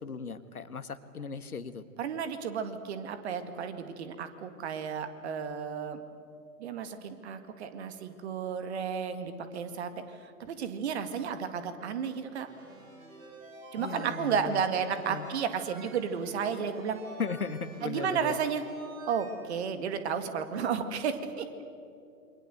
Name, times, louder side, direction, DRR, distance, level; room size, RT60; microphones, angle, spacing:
voice 1, 0.0-1.8 13.8-14.6 15.0-15.3 17.2-18.3, left 5 dB, 75° left, 12 dB, 1.6 m, -37 dB
voice 2, 2.0-6.0 6.6-12.5 13.7-17.0 17.8-18.6 19.1-21.5, right 7 dB, 45° right, 9 dB, 2.1 m, -33 dB
sound 1, 12.4-19.3, right 1 dB, 65° right, 7.7 m, -49 dB
28.0 x 23.0 x 7.9 m, 2.5 s
figure-of-eight pair, 115°, 45 cm